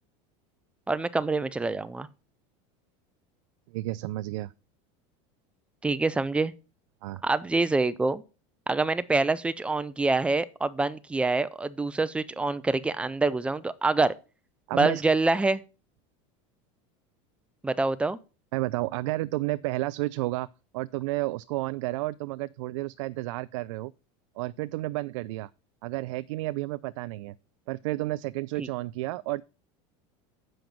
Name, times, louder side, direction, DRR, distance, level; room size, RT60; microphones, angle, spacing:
voice 1, 0.9-2.1 5.8-6.5 7.2-8.2 8.7-14.1 14.7-15.6 17.6-18.2 28.6-28.7, right 3 dB, 5° right, 0.4 m, -26 dB
voice 2, 3.7-4.5 7.0-7.2 14.7-15.0 18.5-20.5 20.7-23.9 24.4-25.5 25.8-27.3 27.7-29.4, right 18 dB, 85° right, 0.4 m, -31 dB
7.8 x 5.2 x 5.9 m
supercardioid pair, 150°, 16 cm